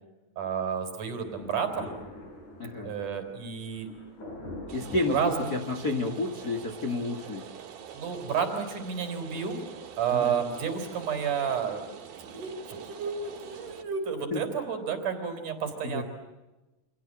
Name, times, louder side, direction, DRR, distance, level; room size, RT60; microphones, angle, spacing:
voice 1, 0.4-2.0 2.8-3.9 4.8-5.5 7.9-9.6 10.0-11.9 12.2-16.0, right 6 dB, 60° right, 7 dB, 5.3 m, -31 dB
Thunder, 1.2-6.0, left 1 dB, 55° left, 9.0 m, -44 dB
voice 2, 2.6-2.9 4.7-5.2 5.5-7.4 10.1-10.4 14.3-14.4 15.8-16.0, left 2 dB, 35° left, 6 dB, 1.9 m, -30 dB
Rain, 4.7-13.8, right 9 dB, 85° right, 4.3 m, -45 dB
30.0 x 26.5 x 7.5 m, 1.1 s
omnidirectional pair, 4.0 m